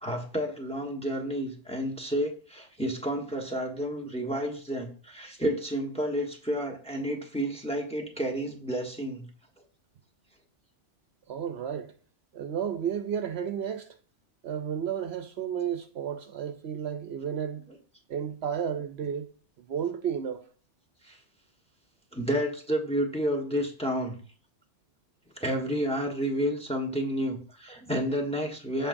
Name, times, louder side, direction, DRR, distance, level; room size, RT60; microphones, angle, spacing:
voice 1, 0.0-9.3 21.0-21.2 22.1-24.2 25.4-28.9, equal, 5° left, 1.2 m, -30 dB
voice 2, 11.3-11.9 12.3-13.9 14.4-17.7 18.1-20.4, right 8 dB, 65° right, 0.9 m, -32 dB
14.5 x 5.1 x 2.6 m
omnidirectional pair, 1.2 m